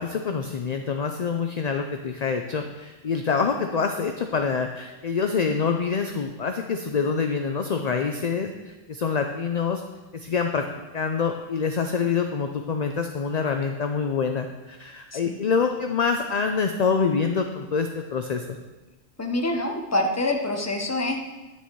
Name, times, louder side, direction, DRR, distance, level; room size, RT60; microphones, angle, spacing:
voice 1, 0.0-9.8 10.1-10.6 10.9-18.6, left 5 dB, 50° left, 5 dB, 0.5 m, -26 dB
voice 2, 15.1-15.5 19.2-21.2, left 1 dB, 15° left, 3 dB, 0.8 m, -26 dB
10.0 x 7.1 x 4.6 m, 1.1 s
omnidirectional pair, 1.3 m